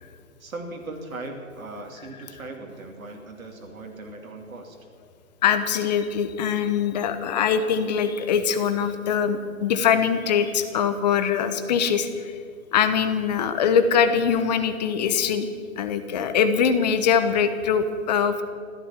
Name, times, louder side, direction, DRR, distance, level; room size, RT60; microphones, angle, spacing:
voice 1, 0.4-4.8, right 2 dB, 70° right, 2 dB, 2.9 m, -38 dB
voice 2, 5.4-12.3 12.7-15.5 15.8-18.4, left 7 dB, 30° left, 10 dB, 1.1 m, -22 dB
15.0 x 13.0 x 7.3 m, 2.3 s
figure-of-eight pair, 140°, 42 cm